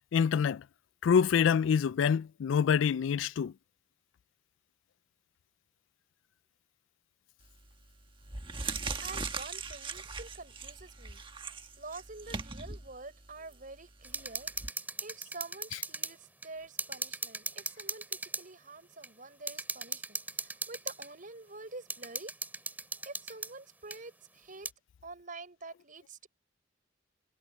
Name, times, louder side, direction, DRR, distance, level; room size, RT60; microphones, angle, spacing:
voice 1, 0.1-0.6 1.0-3.5, left 7 dB, 80° left, 0.3 m, -26 dB
sound 1, 7.4-7.7 8.2-14.7, right 4 dB, 25° right, 1.5 m, -40 dB
voice 2, 9.0-22.3 23.0-24.7 25.0-26.3, right 3 dB, 45° right, 6.0 m, -47 dB
sound 2, 14.0-16.1 16.4-16.5 16.8-18.5 19.0-19.1 19.5-21.1 21.9-23.5 23.9-24.0 24.7-24.8, right 3 dB, 10° right, 2.7 m, -38 dB
head